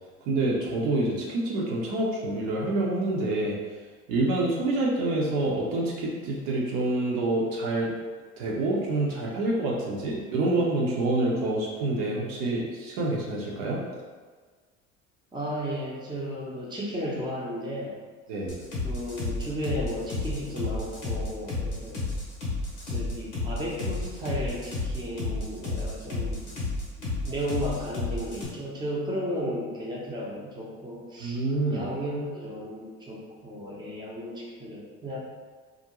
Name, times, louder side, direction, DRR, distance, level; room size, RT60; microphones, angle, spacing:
voice 1, 0.3-3.6 4.1-7.9 8.4-13.8 18.3-18.6 31.2-31.9, right 2 dB, 55° right, -4 dB, 0.7 m, -27 dB
voice 2, 15.3-18.0 18.8-22.0 22.8-26.6 27.0-31.4 31.7-35.2, equal, 10° right, -5 dB, 0.6 m, -34 dB
sound 1, 18.5-28.5, left 3 dB, 85° left, 0.7 m, -31 dB
2.4 x 2.1 x 2.9 m, 1.5 s
figure-of-eight pair, 60°, 39 cm